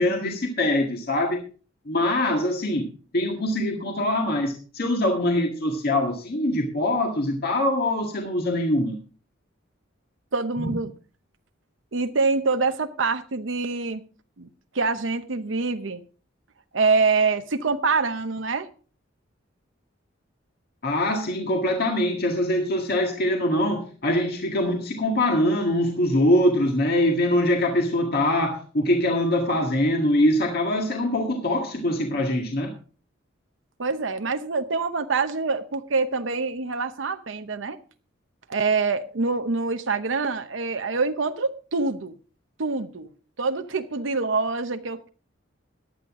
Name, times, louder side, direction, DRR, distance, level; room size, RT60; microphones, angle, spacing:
voice 1, 0.0-1.4 1.9-2.9 3.1-9.0 20.8-32.7, left 1 dB, 55° left, 2 dB, 1.9 m, -23 dB
voice 2, 10.3-10.9 11.9-14.0 14.4-14.5 14.7-16.0 16.7-18.7 33.8-37.8 38.5-42.1 42.6-43.1 43.4-45.1, right 4 dB, 80° right, 8 dB, 0.8 m, -25 dB
14.5 x 10.5 x 3.7 m, 0.38 s
head